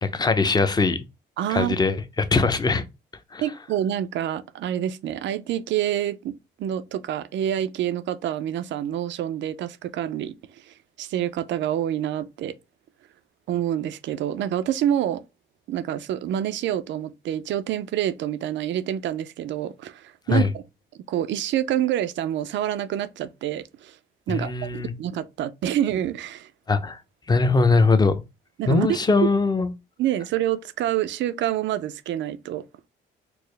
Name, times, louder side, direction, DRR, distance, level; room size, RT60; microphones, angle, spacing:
voice 1, 0.0-1.0 1.5-2.8 3.3-3.4 20.3-20.5 24.3-24.9 26.7-27.0 27.3-28.2 28.7-29.7, left 3 dB, 20° left, 0.5 m, -21 dB
voice 2, 1.4-1.8 3.4-12.5 13.5-15.2 15.7-20.6 21.1-24.0 24.3-26.5 28.6-29.0 30.0-32.6, right 11 dB, 70° right, 0.4 m, -27 dB
4.6 x 2.0 x 3.2 m
cardioid pair, 90°, 20 cm